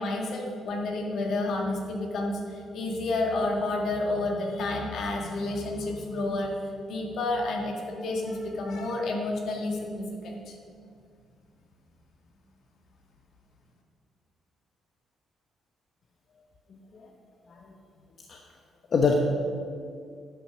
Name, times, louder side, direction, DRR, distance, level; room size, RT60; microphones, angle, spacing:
voice 1, 0.0-6.5 6.9-10.6, left 2 dB, 70° left, 1 dB, 1.8 m, -30 dB
voice 2, 16.7-17.1 17.5-17.7 18.3-18.4 18.9-19.1, left 5 dB, 50° left, 2 dB, 0.9 m, -26 dB
11.0 x 6.0 x 6.3 m, 2.3 s
cardioid pair, 90°, 0 cm